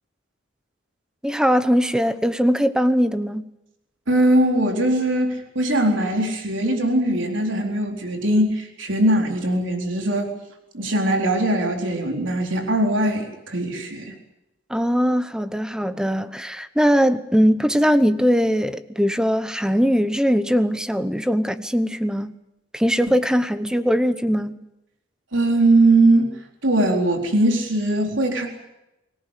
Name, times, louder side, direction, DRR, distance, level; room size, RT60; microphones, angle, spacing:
voice 1, 1.2-3.5 14.7-22.4 22.7-24.6, equal, 5° right, 1.0 m, -20 dB
voice 2, 4.1-10.3 10.7-14.1 25.3-26.3 26.6-28.5, right 1 dB, 75° right, 4.2 m, -20 dB
24.5 x 18.5 x 8.3 m
head